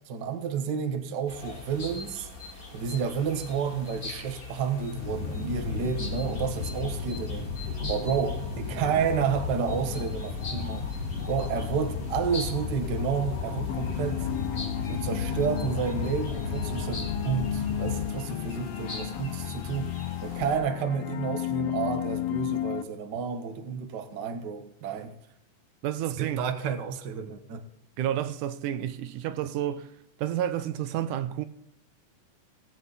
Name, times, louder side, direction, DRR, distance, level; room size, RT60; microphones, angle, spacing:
voice 1, 0.1-2.3 2.7-10.9 11.3-14.3 14.9-25.1 26.2-27.6, right 6 dB, 50° right, 1.3 m, -31 dB
sound 1, 1.3-20.6, left 3 dB, 25° left, 3.5 m, -42 dB
sound 2, 5.0-18.1, left 5 dB, 55° left, 2.4 m, -34 dB
sound 3, 13.7-22.8, left 12 dB, 80° left, 1.4 m, -33 dB
voice 2, 25.8-26.4 28.0-29.9 30.2-31.5, right 11 dB, 80° right, 2.2 m, -30 dB
19.5 x 8.2 x 4.1 m
omnidirectional pair, 3.7 m